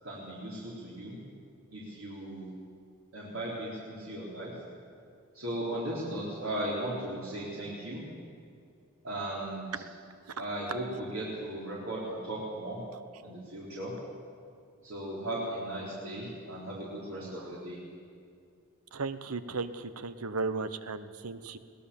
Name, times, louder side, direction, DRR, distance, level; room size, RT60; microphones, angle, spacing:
voice 1, 0.0-1.2 1.7-2.5 3.1-4.6 5.3-8.0 9.0-9.8 10.4-12.8 13.2-13.9 14.8-17.8, right 1 dB, 65° right, -6 dB, 4.1 m, -37 dB
voice 2, 18.9-21.6, right 4 dB, 90° right, 12 dB, 1.0 m, -35 dB
21.5 x 18.5 x 7.1 m, 2.3 s
head